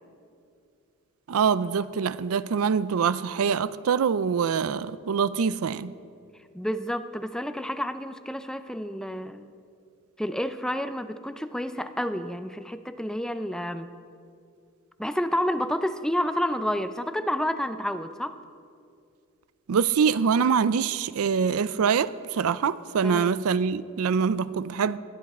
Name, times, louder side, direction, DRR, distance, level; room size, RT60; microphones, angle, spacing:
voice 1, 1.3-5.9 19.7-25.0, right 6 dB, 75° right, 0.4 m, -24 dB
voice 2, 6.5-9.5 10.2-13.9 15.0-18.4 23.0-23.3, equal, 5° left, 0.4 m, -29 dB
20.0 x 12.5 x 4.3 m
head